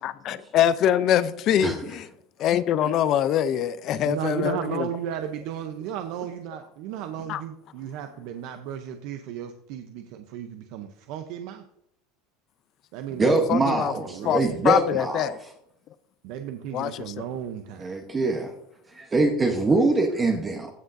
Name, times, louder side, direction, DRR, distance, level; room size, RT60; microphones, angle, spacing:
voice 1, 0.0-2.0 2.4-4.9 7.3-7.4 13.2-13.9 14.2-15.4 16.7-17.2, left 10 dB, 40° left, 0.5 m, -24 dB
voice 2, 4.0-11.6 12.9-14.7 16.2-17.9, right 9 dB, 60° right, 0.7 m, -34 dB
voice 3, 13.2-15.5 17.8-18.5 18.9-20.7, right 3 dB, 15° right, 0.9 m, -24 dB
15.0 x 6.4 x 2.6 m
supercardioid pair, 145°, 0 cm